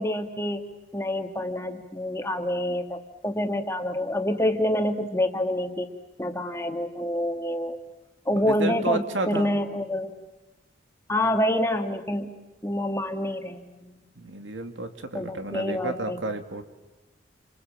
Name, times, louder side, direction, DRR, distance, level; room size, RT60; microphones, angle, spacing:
voice 1, 0.0-5.9 6.2-7.8 8.3-10.1 11.1-12.3 12.6-14.0 15.1-16.2, left 1 dB, 15° left, 4 dB, 1.9 m, -27 dB
voice 2, 8.3-9.5 14.2-16.6, right 2 dB, 80° right, 6 dB, 2.5 m, -31 dB
29.5 x 26.5 x 7.6 m, 1.1 s
head